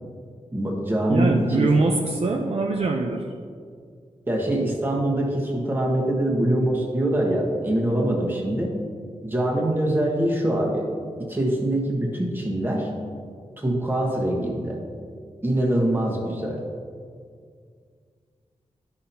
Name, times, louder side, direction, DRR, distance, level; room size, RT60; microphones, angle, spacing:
voice 1, 0.5-1.7 4.3-8.8 9.2-10.9 11.3-12.9 13.6-14.8 15.4-16.6, right 1 dB, 15° right, -2 dB, 1.3 m, -24 dB
voice 2, 1.1-3.3, right 3 dB, 60° right, 1 dB, 0.6 m, -23 dB
12.0 x 5.8 x 2.8 m, 2.1 s
wide cardioid pair, 150°, 12 cm